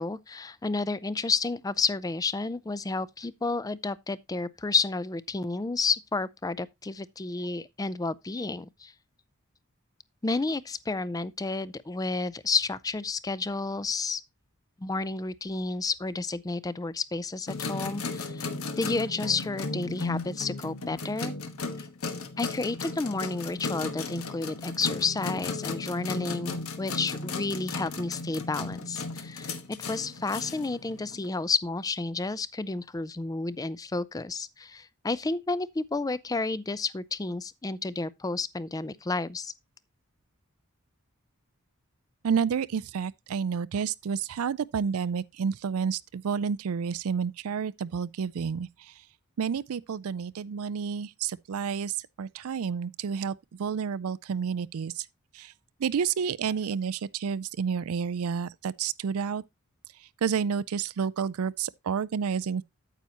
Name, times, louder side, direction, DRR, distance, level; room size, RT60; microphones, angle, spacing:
voice 1, 0.0-8.9 10.2-14.2 14.8-18.5 18.8-21.3 21.8-21.9 22.4-39.5, left 3 dB, 15° left, 0.4 m, -31 dB
sound 1, 17.5-31.3, left 3 dB, 80° left, 1.2 m, -35 dB
voice 2, 42.2-48.9 49.4-55.0 55.3-55.5 55.8-59.4 60.2-62.6, right 6 dB, 80° right, 0.4 m, -30 dB
9.1 x 8.3 x 2.8 m
head